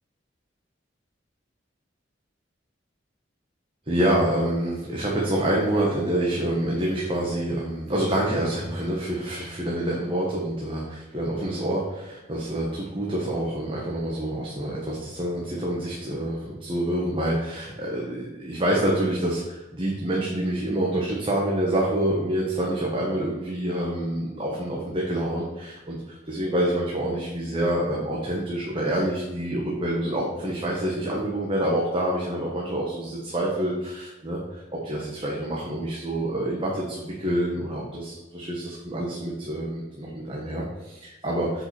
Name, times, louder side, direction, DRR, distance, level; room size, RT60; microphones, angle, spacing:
voice 1, 3.9-41.6, right 1 dB, 30° right, -3 dB, 1.2 m, -27 dB
7.7 x 5.5 x 4.4 m, 1.1 s
head